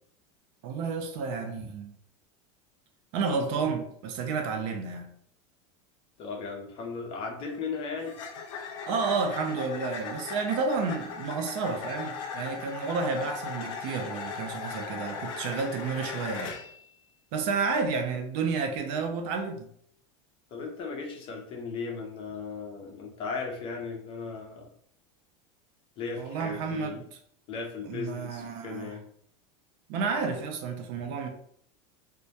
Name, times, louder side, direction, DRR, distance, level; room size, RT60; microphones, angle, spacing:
voice 1, 0.6-1.9 3.1-5.1 8.9-16.6 17.3-19.7 26.2-27.0 27.8-29.0 29.9-31.3, right 4 dB, 55° right, 0.5 m, -31 dB
voice 2, 6.2-8.1 20.5-24.7 26.0-27.0 27.5-29.0, left 5 dB, 35° left, 0.5 m, -36 dB
sound 1, 7.4-16.8, left 5 dB, 85° left, 0.5 m, -38 dB
2.1 x 2.1 x 2.7 m
supercardioid pair, 145°, 16 cm